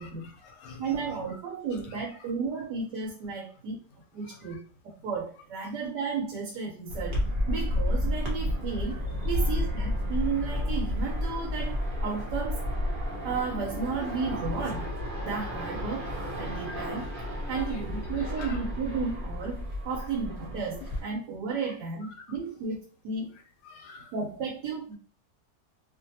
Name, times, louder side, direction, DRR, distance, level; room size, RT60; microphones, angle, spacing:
voice 1, 0.0-1.0 1.3-1.4 4.2-4.6 9.3-9.5 17.4-17.8 18.1-18.6 23.6-24.1, left 5 dB, 80° left, 3 dB, 1.2 m, -47 dB
voice 2, 0.8-3.8 4.1-7.2 7.5-12.6 13.2-14.9 15.2-17.1 17.5-23.3 24.1-25.0, right 5 dB, 85° right, 0 dB, 1.3 m, -33 dB
sound 1, 6.9-21.0, left 1 dB, 40° right, 0.8 m, -31 dB
2.8 x 2.5 x 2.7 m, 0.38 s
omnidirectional pair, 1.8 m